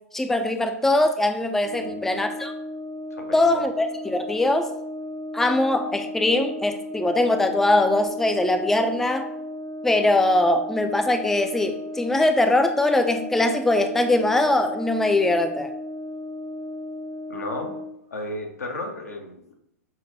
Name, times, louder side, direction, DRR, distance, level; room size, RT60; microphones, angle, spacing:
voice 1, 0.1-2.5 3.3-4.7 5.3-9.3 9.8-15.7, left 2 dB, 5° left, 7 dB, 0.3 m, -21 dB
Brass instrument, 1.6-18.0, left 1 dB, 75° right, 1.0 m, -35 dB
voice 2, 1.7-2.0 3.1-3.7 17.3-17.8 18.1-19.5, left 2 dB, 80° left, 2 dB, 0.8 m, -34 dB
5.9 x 2.1 x 3.0 m, 0.76 s
figure-of-eight pair, 105°, 8 cm